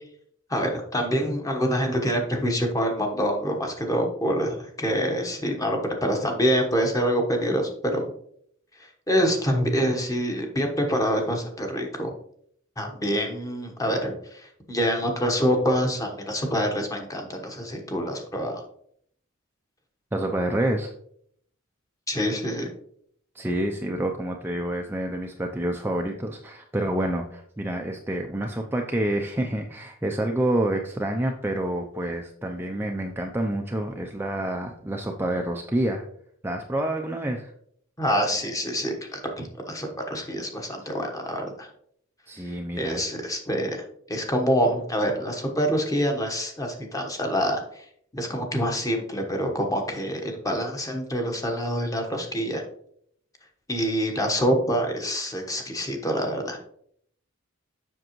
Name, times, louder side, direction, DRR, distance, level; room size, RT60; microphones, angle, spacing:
voice 1, 0.5-8.1 9.1-12.1 12.8-18.6 22.1-22.7 38.0-41.7 42.4-47.8 48.1-52.6 53.7-56.6, equal, 15° left, 3 dB, 1.1 m, -26 dB
voice 2, 20.1-20.9 23.3-36.0 36.4-37.5 42.3-43.1, right 1 dB, 10° right, 2 dB, 0.5 m, -28 dB
7.6 x 6.0 x 3.0 m, 0.65 s
head